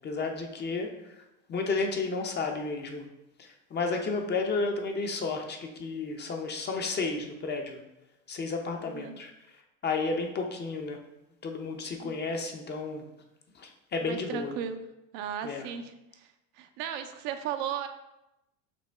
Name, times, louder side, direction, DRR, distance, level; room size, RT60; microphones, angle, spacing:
voice 1, 0.0-0.9 1.5-3.1 3.4-7.8 8.3-9.3 9.8-11.0 11.4-13.0 13.6-14.5 15.4-15.7, left 3 dB, 25° left, 3 dB, 0.6 m, -32 dB
voice 2, 8.8-9.1 12.0-12.2 14.0-14.8 15.1-16.3 16.5-17.9, right 8 dB, 65° right, 7 dB, 0.6 m, -36 dB
5.1 x 2.9 x 3.4 m, 0.91 s
supercardioid pair, 105°, 40 cm